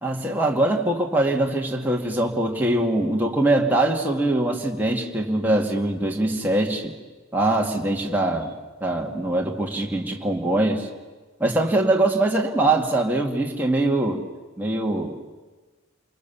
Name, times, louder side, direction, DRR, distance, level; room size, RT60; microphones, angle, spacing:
voice 1, 0.0-6.9 7.3-8.5 8.8-10.9 11.4-14.2 14.6-15.2, right 2 dB, 10° right, -1 dB, 2.3 m, -22 dB
29.0 x 22.0 x 7.2 m, 1.3 s
head